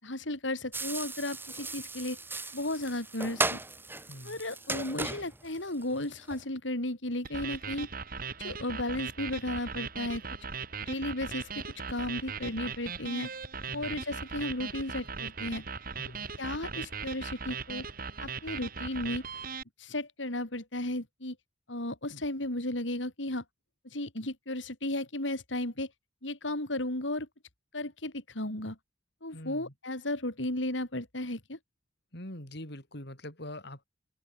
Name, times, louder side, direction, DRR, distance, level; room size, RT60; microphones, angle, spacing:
voice 1, 0.0-2.2 2.5-3.6 4.2-7.9 8.4-10.2 10.8-13.3 13.7-15.6 16.4-17.9 18.2-19.2 19.8-21.4 21.7-23.4 23.8-25.9 26.2-27.3 27.7-28.8 29.2-31.6, left 1 dB, 80° left, 5.0 m, -34 dB
sound 1, 0.7-6.4, right 2 dB, 10° right, 3.1 m, -36 dB
voice 2, 4.1-4.4 13.7-14.0 16.0-16.3 29.3-29.7 32.1-33.8, left 1 dB, 60° left, 7.0 m, -44 dB
sound 2, 7.2-19.6, right 5 dB, 50° right, 4.5 m, -39 dB
open air
head